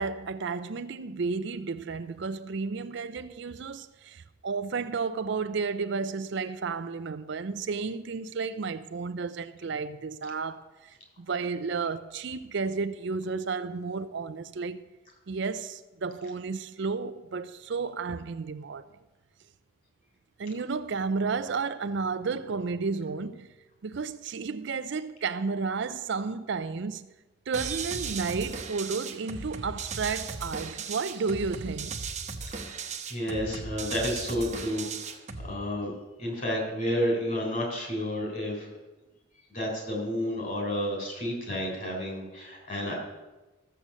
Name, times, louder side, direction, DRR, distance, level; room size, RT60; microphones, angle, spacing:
voice 1, 0.0-14.8 15.3-18.8 20.4-23.5 23.8-27.1 27.5-32.0, right 4 dB, 55° right, 0.4 m, -32 dB
sound 1, 27.5-35.5, right 5 dB, 35° right, 0.9 m, -37 dB
voice 2, 32.5-35.2 35.4-35.9 36.2-38.7 39.5-42.9, equal, 40° left, 3.7 m, -31 dB
13.5 x 7.8 x 6.2 m
head